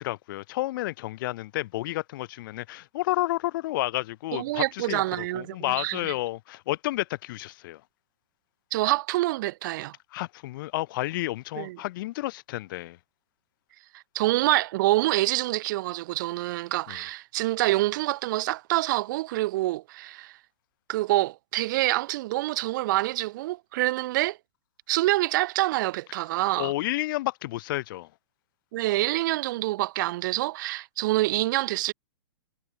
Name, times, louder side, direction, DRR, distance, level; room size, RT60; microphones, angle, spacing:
voice 1, 0.0-7.8 10.1-13.0 16.9-17.0 26.6-28.1, left 17 dB, 45° left, 4.3 m, -31 dB
voice 2, 4.3-6.1 8.7-9.9 11.6-11.8 13.9-20.4 20.9-24.4 24.9-26.7 28.7-31.9, right 18 dB, 40° right, 1.1 m, -26 dB
hypercardioid pair, 155°, 15 cm